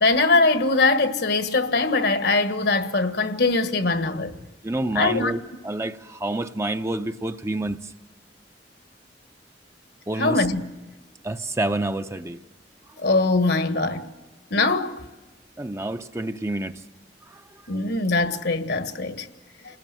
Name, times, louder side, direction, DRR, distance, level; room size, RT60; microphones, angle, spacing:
voice 1, 0.0-4.4 4.9-5.3 10.2-10.6 13.0-14.1 14.5-15.0 17.7-19.3, left 3 dB, 65° left, 1.6 m, -22 dB
voice 2, 4.6-7.8 10.1-10.4 11.2-12.4 15.6-16.8 17.3-17.4, right 2 dB, 15° right, 0.7 m, -28 dB
29.0 x 19.0 x 7.6 m
head